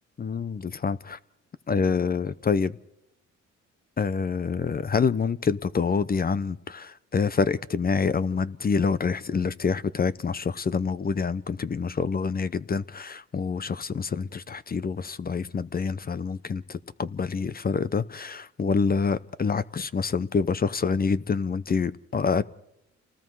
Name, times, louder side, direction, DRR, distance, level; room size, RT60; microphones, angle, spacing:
voice 1, 0.2-1.2 1.7-2.7 4.0-22.4, left 5 dB, 30° left, 0.7 m, -27 dB
29.0 x 19.5 x 4.7 m
cardioid pair, 90°, 30 cm